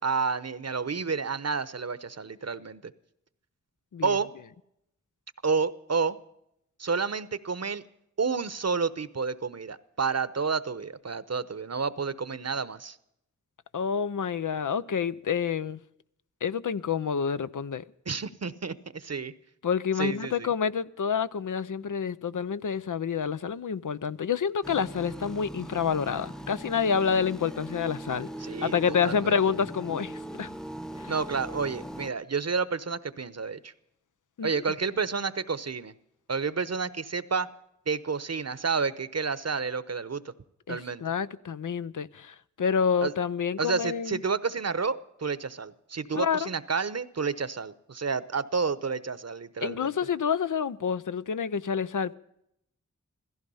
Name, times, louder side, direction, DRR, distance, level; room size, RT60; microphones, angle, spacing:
voice 1, 0.0-2.8 4.0-4.3 5.4-6.2 6.8-7.8 8.2-13.0 18.1-19.3 20.0-20.5 28.4-29.4 31.1-33.7 34.4-35.9 36.3-37.5 37.9-40.3 40.7-41.0 43.0-43.1 43.6-50.0, right 5 dB, 55° right, 0.9 m, -30 dB
voice 2, 13.7-15.8 16.4-17.8 19.6-28.3 28.6-30.5 31.0-31.1 34.4-34.5 40.7-44.2 46.2-46.5 49.6-52.2, left 6 dB, 80° left, 0.6 m, -28 dB
sound 1, 24.6-32.1, right 1 dB, ahead, 0.8 m, -40 dB
16.0 x 15.0 x 5.5 m
cardioid pair, 40°, 30 cm